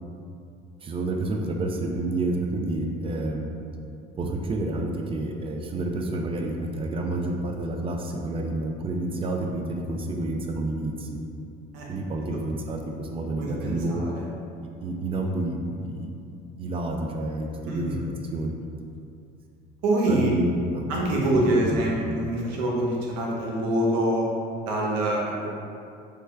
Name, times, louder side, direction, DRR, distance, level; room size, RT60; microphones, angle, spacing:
voice 1, 0.8-3.6 4.2-11.2 11.9-14.0 14.8-16.1 16.6-18.0 18.3-18.5 20.1-20.9 21.3-22.2, right 2 dB, 25° right, 2 dB, 0.4 m, -29 dB
voice 2, 13.4-14.1 17.7-18.0 19.8-20.3 20.9-24.2 24.7-25.5, right 1 dB, 85° right, -3 dB, 0.7 m, -25 dB
3.2 x 2.2 x 3.2 m, 2.5 s
supercardioid pair, 85°, 21 cm